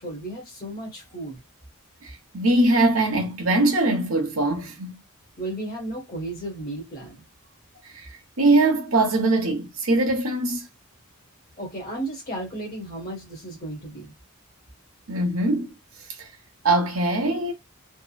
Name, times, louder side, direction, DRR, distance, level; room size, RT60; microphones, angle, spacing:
voice 1, 0.0-1.4 5.4-7.3 11.6-14.1, right 1 dB, 40° left, 1.3 m, -34 dB
voice 2, 2.0-5.0 8.4-10.7 15.1-15.7 16.2-16.3 16.6-17.5, right 2 dB, 65° right, 0.9 m, -22 dB
3.6 x 2.1 x 2.3 m
head